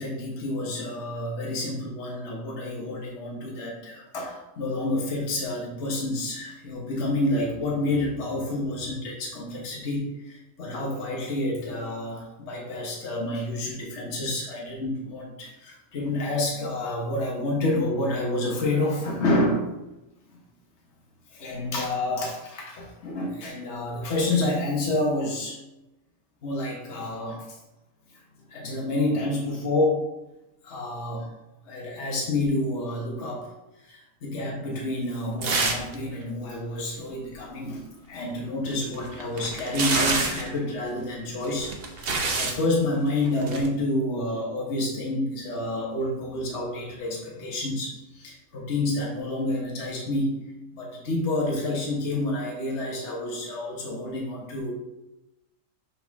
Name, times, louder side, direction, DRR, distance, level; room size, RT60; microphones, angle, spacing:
voice 1, 0.0-19.6 20.3-20.4 21.3-25.6 26.4-27.4 28.5-30.1 30.6-31.3 31.6-33.5 33.9-54.7, left 2 dB, 55° left, -2 dB, 1.4 m, -29 dB
sound 1, 35.4-36.0 36.2-36.3 38.7-40.5 41.4-42.6 43.4-43.7, right 3 dB, 50° right, 1.0 m, -27 dB
6.4 x 4.3 x 3.5 m, 0.95 s
omnidirectional pair, 1.4 m